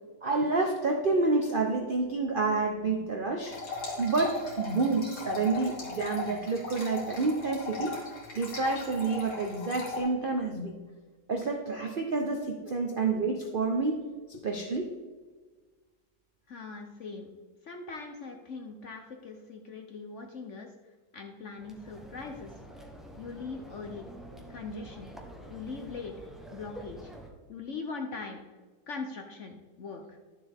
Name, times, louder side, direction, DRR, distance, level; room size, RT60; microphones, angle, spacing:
voice 1, 0.2-3.6 4.0-7.9 8.3-10.7 11.3-14.9, right 3 dB, 60° right, 3 dB, 0.5 m, -29 dB
sound 1, 3.4-10.0, left 3 dB, 80° left, 2.9 m, -39 dB
voice 2, 16.5-17.3 17.6-20.7 21.1-22.5 23.2-24.1 24.5-25.1 25.5-26.2 26.5-27.1 27.5-28.4 28.9-30.2, left 4 dB, 55° left, 3 dB, 0.9 m, -41 dB
sound 2, 21.6-27.3, right 1 dB, ahead, 0.4 m, -47 dB
11.5 x 7.2 x 3.5 m, 1.4 s
omnidirectional pair, 2.0 m